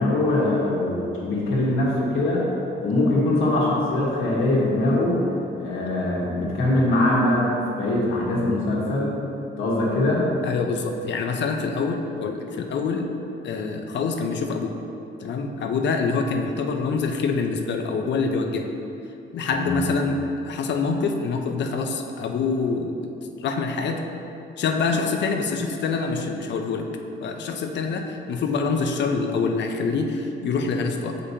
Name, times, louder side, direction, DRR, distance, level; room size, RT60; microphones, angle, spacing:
voice 1, 0.0-2.5 2.8-5.2 5.6-7.5 7.8-9.1 9.6-10.2 19.5-19.8, left 1 dB, 85° left, -5 dB, 1.4 m, -22 dB
voice 2, 10.4-13.1 13.4-14.8 15.2-18.7 19.3-23.1 23.4-24.0 24.6-26.9 27.2-31.2, left 4 dB, 65° left, 4 dB, 0.6 m, -25 dB
6.7 x 5.1 x 2.8 m, 2.7 s
cardioid pair, 90°, 20 cm